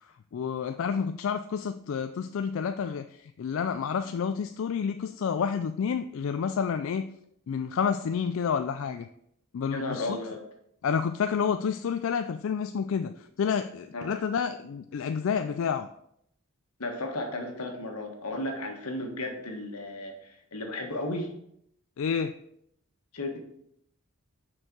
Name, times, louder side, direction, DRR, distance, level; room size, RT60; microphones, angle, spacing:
voice 1, 0.3-7.1 7.5-9.1 9.5-10.2 10.8-15.9 22.0-22.3, left 6 dB, 60° left, 9 dB, 0.3 m, -29 dB
voice 2, 9.7-10.4 13.9-14.1 16.8-21.3 23.1-23.4, left 1 dB, 85° left, 3 dB, 1.5 m, -34 dB
6.4 x 4.5 x 6.1 m, 0.73 s
head